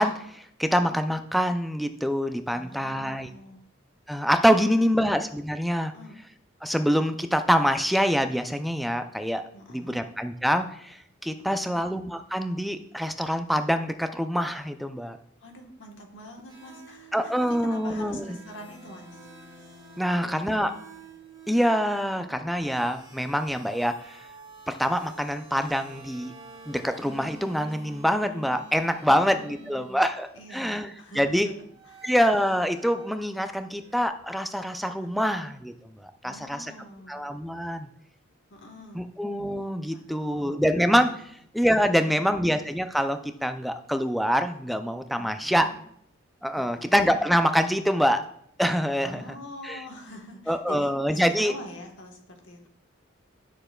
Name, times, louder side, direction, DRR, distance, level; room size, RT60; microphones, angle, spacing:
voice 1, 0.0-3.3 4.1-5.9 6.6-9.4 9.7-15.2 17.1-18.4 20.0-20.7 21.5-24.2 24.7-26.3 26.7-31.5 32.0-36.7 37.1-37.9 38.9-41.2 41.5-45.7 46.4-48.2 48.6-49.2 49.6-49.8 50.5-51.5, equal, ahead, 8 dB, 0.3 m, -25 dB
voice 2, 2.5-3.6 4.5-5.1 5.9-6.2 9.5-10.0 11.5-11.8 15.4-19.2 20.0-20.7 29.1-30.0 30.3-32.1 35.1-35.3 36.2-37.2 38.5-39.1 39.9-40.6 41.2-41.3 45.1-45.7 46.5-47.0 49.0-52.7, left 1 dB, 65° left, 2 dB, 1.3 m, -45 dB
sound 1, 16.5-30.1 31.7-33.2 33.6-34.1, right 3 dB, 25° right, 2.0 m, -49 dB
9.7 x 6.6 x 2.3 m, 0.69 s
head